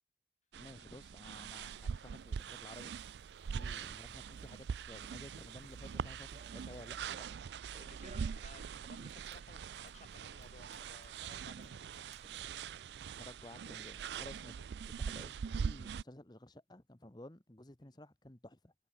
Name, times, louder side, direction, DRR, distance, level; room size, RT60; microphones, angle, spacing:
voice 1, 0.5-3.0 3.5-7.4 13.0-18.7, left 1 dB, 25° left, 1.2 m, -54 dB
sound 1, 0.5-16.0, right 6 dB, 75° right, 0.4 m, -43 dB
sound 2, 1.5-7.0, right 10 dB, 60° right, 5.7 m, -73 dB
voice 2, 3.6-3.9 7.7-12.0 17.8-18.0, left 2 dB, 40° left, 2.7 m, -59 dB
Run, 5.7-13.3, right 3 dB, 40° right, 0.8 m, -62 dB
head